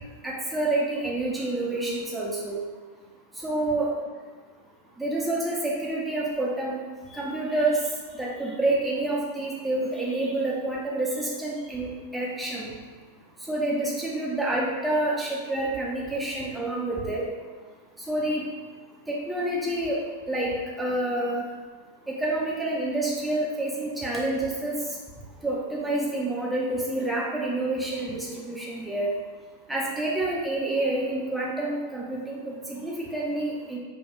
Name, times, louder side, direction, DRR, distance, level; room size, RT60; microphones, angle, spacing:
voice 1, 0.2-2.6 3.4-3.9 5.0-6.8 7.1-7.8 8.1-12.7 13.5-17.3 18.1-18.4 19.1-20.0 20.3-21.4 22.1-24.8 25.4-29.1 29.7-33.8, right 2 dB, 5° right, -5 dB, 0.6 m, -28 dB
4.3 x 2.3 x 3.0 m, 1.5 s
figure-of-eight pair, 90°, 0 cm